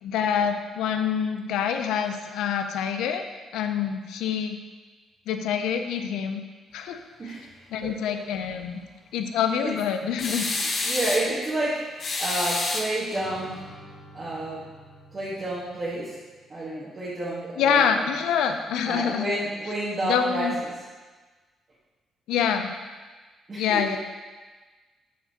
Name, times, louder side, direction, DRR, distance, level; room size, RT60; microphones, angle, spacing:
voice 1, 0.0-3.3 3.5-4.6 5.3-6.4 6.7-7.0 7.7-8.8 9.1-10.5 10.7-10.8 17.6-19.3 20.0-20.6 22.3-22.7 23.6-24.0, left 7 dB, 90° left, 7 dB, 0.4 m, -26 dB
voice 2, 7.2-8.2 9.6-9.7 10.8-13.6 14.1-14.6 15.1-16.2 16.5-18.0 18.8-20.7 23.5-23.8, right 1 dB, 35° right, -8 dB, 1.2 m, -30 dB
sound 1, 10.2-11.3 12.0-13.3, left 2 dB, 50° left, 0.9 m, -28 dB
sound 2, 13.1-16.7, left 1 dB, 5° left, 1.5 m, -48 dB
8.4 x 4.1 x 2.8 m, 1.3 s
cardioid pair, 90°, 0 cm